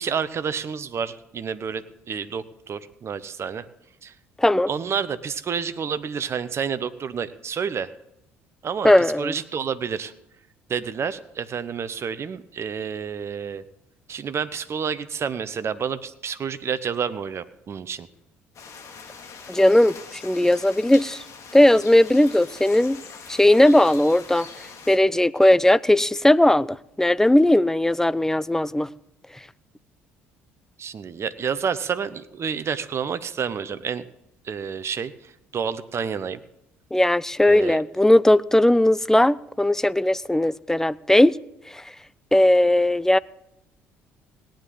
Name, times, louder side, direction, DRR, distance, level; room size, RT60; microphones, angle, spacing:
voice 1, 0.0-3.7 4.0-4.1 4.7-7.9 8.6-10.1 10.7-13.6 14.1-18.1 30.8-34.1 34.4-36.4 37.5-37.8, right 6 dB, 40° right, 0.9 m, -29 dB
voice 2, 4.4-4.7 8.8-9.3 19.5-21.2 21.5-23.0 23.3-24.5 24.9-28.9 36.9-41.4 41.7-41.8 42.3-43.2, left 1 dB, 5° left, 0.5 m, -18 dB
sound 1, 18.5-25.0, left 5 dB, 50° left, 2.2 m, -42 dB
18.0 x 10.5 x 3.9 m
hypercardioid pair, 55°, 7 cm